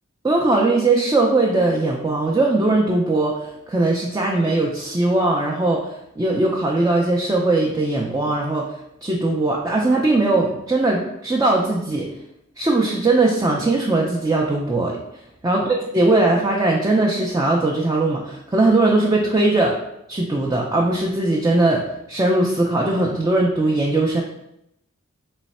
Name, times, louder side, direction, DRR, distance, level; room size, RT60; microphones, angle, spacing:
voice 1, 0.2-8.6 9.0-12.1 12.6-15.0 15.4-19.8 20.1-21.8 22.1-24.2, right 2 dB, 15° right, -2 dB, 0.4 m, -19 dB
3.2 x 3.2 x 4.1 m, 0.80 s
head